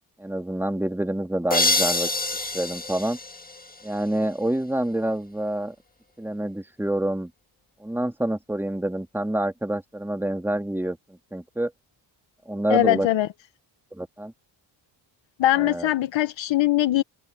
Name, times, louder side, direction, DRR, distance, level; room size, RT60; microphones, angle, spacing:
voice 1, 0.2-2.1 2.5-3.2 3.8-5.7 6.2-7.3 7.8-11.7 12.5-13.1 13.9-14.3 15.6-15.9, right 1 dB, 5° right, 2.3 m, -27 dB
sound 1, 1.5-4.2, left 2 dB, 20° left, 1.7 m, -26 dB
voice 2, 12.7-13.3 15.4-17.0, left 13 dB, 65° left, 1.2 m, -21 dB
open air
cardioid pair, 80°, 49 cm